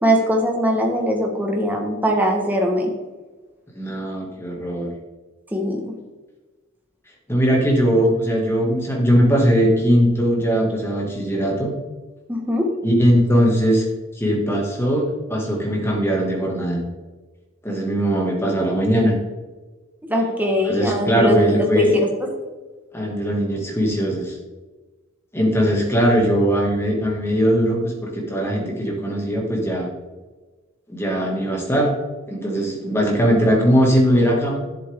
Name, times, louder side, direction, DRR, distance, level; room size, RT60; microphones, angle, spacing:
voice 1, 0.0-2.9 5.5-6.0 12.3-12.7 20.1-21.9, equal, 10° right, 1 dB, 1.4 m, -21 dB
voice 2, 3.7-4.9 7.3-11.7 12.8-13.8 14.2-16.8 17.6-19.1 20.6-22.0 22.9-24.4 25.3-29.9 30.9-31.9 32.3-34.6, equal, 10° left, -2 dB, 2.1 m, -19 dB
10.5 x 7.6 x 3.6 m, 1.3 s
head